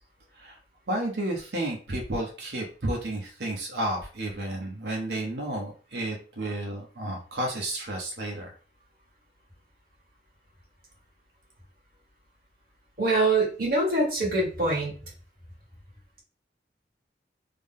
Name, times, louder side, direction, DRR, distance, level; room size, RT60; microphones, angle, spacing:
voice 1, 0.9-8.5, right 1 dB, 80° right, -1 dB, 0.9 m, -32 dB
voice 2, 13.0-14.9, right 2 dB, 55° right, -5 dB, 1.9 m, -24 dB
3.4 x 2.1 x 3.7 m, 0.38 s
head